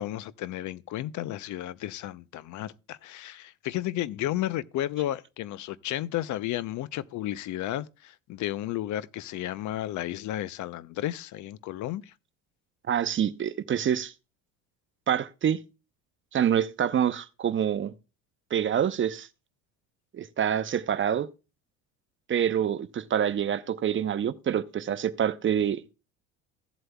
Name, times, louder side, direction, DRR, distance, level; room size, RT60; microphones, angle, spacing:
voice 1, 0.0-12.1, left 13 dB, 50° left, 0.6 m, -33 dB
voice 2, 12.9-14.1 15.1-15.6 16.3-17.9 18.5-19.3 20.1-21.3 22.3-25.8, right 9 dB, 30° right, 0.7 m, -26 dB
15.5 x 7.7 x 2.3 m
supercardioid pair, 80°, 37 cm